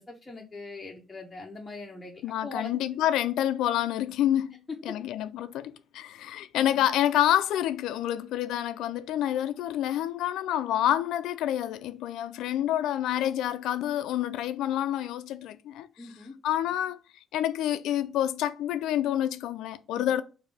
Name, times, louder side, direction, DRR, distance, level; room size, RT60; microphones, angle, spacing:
voice 1, 0.0-2.8 4.7-5.0 6.6-6.8 16.0-16.3 19.9-20.1, left 3 dB, 20° left, 0.8 m, -41 dB
voice 2, 2.2-15.9 16.4-17.0 17.3-20.2, left 12 dB, 90° left, 0.3 m, -28 dB
4.7 x 2.6 x 3.4 m
cardioid pair, 90°, 0 cm